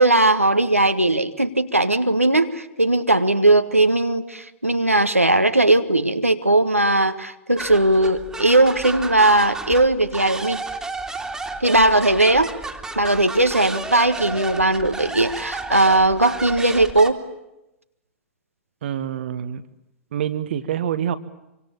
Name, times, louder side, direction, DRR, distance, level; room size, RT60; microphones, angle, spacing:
voice 1, 0.0-10.6 11.6-12.5 13.0-17.2, right 2 dB, 90° right, 8 dB, 1.8 m, -18 dB
sound 1, 7.6-17.1, right 3 dB, 5° right, 2.7 m, -32 dB
voice 2, 18.8-19.6 20.1-21.2, right 9 dB, 55° right, 12 dB, 1.6 m, -26 dB
26.5 x 25.0 x 8.7 m, 0.92 s
figure-of-eight pair, 100°, 7 cm